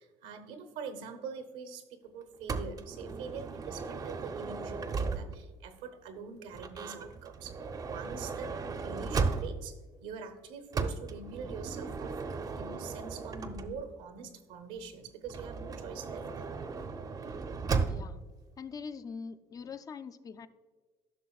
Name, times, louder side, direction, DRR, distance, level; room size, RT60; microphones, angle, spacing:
voice 1, 0.0-7.6 7.8-8.6 8.8-12.2 12.6-16.5, right 5 dB, 85° right, 8 dB, 0.8 m, -44 dB
Motor vehicle (road) / Sliding door, 2.5-5.6 6.5-9.8 10.7-14.0 15.3-18.2, right 4 dB, 30° right, 0.5 m, -36 dB
voice 2, 17.9-18.2 18.6-20.5, left 5 dB, 30° left, 12 dB, 0.4 m, -43 dB
13.0 x 5.7 x 2.3 m, 1.3 s
cardioid pair, 110°, 12 cm